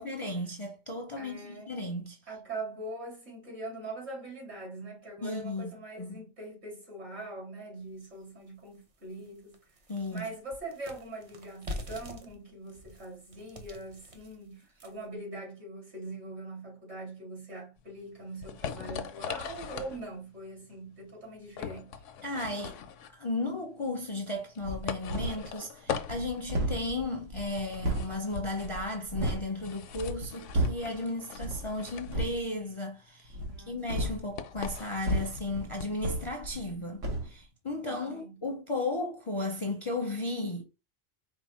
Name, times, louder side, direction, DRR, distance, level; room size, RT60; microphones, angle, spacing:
voice 1, 0.0-2.2 5.2-5.7 6.0-6.2 9.9-10.2 22.2-22.8 23.1-33.4 33.7-40.6, left 2 dB, 35° left, 0.6 m, -35 dB
voice 2, 1.2-1.8 2.3-9.6 10.1-22.0 33.4-34.1 37.9-38.5, right 2 dB, 60° right, 2.5 m, -42 dB
sound 1, 8.0-8.1 8.6-8.7 9.1-15.1, left 1 dB, 40° right, 0.6 m, -45 dB
sound 2, 17.8-36.1, left 7 dB, 80° left, 0.9 m, -41 dB
sound 3, 24.6-25.5 25.9-29.5 29.9-31.0 31.4-31.7 32.0-32.4 33.3-36.8 37.0-37.3, right 1 dB, 80° right, 1.3 m, -34 dB
4.6 x 2.1 x 4.2 m
omnidirectional pair, 1.3 m